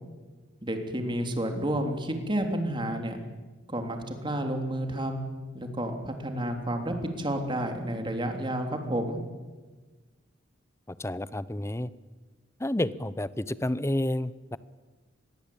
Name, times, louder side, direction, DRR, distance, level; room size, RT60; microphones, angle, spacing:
voice 1, 0.6-3.2 3.7-9.2, right 1 dB, 25° right, 5 dB, 3.4 m, -31 dB
voice 2, 10.9-11.9 12.6-14.6, left 1 dB, 15° left, 17 dB, 0.7 m, -30 dB
26.5 x 21.5 x 8.7 m, 1.3 s
head